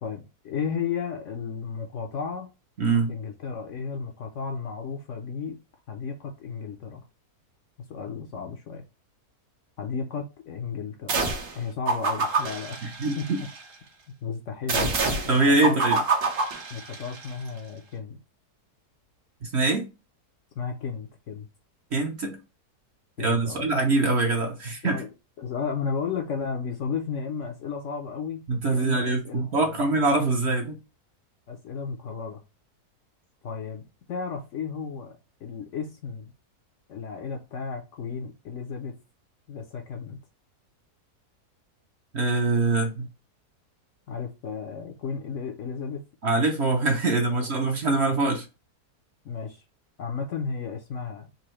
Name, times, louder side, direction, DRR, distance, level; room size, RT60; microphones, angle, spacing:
voice 1, 0.0-2.5 3.1-5.6 5.9-7.0 7.9-8.8 9.8-11.2 11.6-13.5 14.2-14.9 15.2-15.8 16.7-18.2 20.5-21.5 23.2-23.6 24.8-25.1 25.4-29.9 31.5-32.4 33.4-33.8 34.1-36.3 36.9-38.9 39.5-40.2 44.1-46.0 47.3-47.5 49.2-49.6 50.0-51.3, left 6 dB, 65° left, 0.8 m, -34 dB
voice 2, 2.8-3.1 13.0-13.4 15.3-16.0 19.4-19.9 21.9-22.4 23.2-25.0 28.5-30.8 42.1-43.1 46.2-48.4, right 3 dB, 55° right, 0.8 m, -23 dB
sound 1, 11.1-11.6 11.9-13.6 14.7-17.3, right 3 dB, 75° right, 1.4 m, -27 dB
4.1 x 2.6 x 3.0 m
omnidirectional pair, 1.7 m